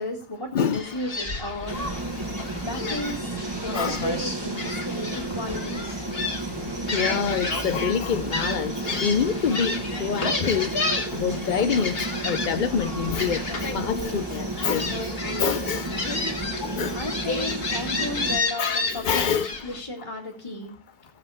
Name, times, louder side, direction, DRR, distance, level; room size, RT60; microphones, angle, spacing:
voice 1, 0.0-2.3 2.6-3.4 3.6-6.0 16.9-20.8, left 1 dB, 20° left, 1.9 m, -34 dB
voice 2, 0.5-0.8 3.7-4.1 6.9-10.7 11.1-12.0 12.2-14.9 15.4-15.9 16.6-17.0 18.6-19.5, left 7 dB, 60° left, 0.5 m, -26 dB
Gull seagull, 0.7-19.8, left 3 dB, 40° left, 1.9 m, -31 dB
sound 1, 1.7-18.4, right 2 dB, 20° right, 1.4 m, -32 dB
15.0 x 7.6 x 4.8 m
omnidirectional pair, 1.5 m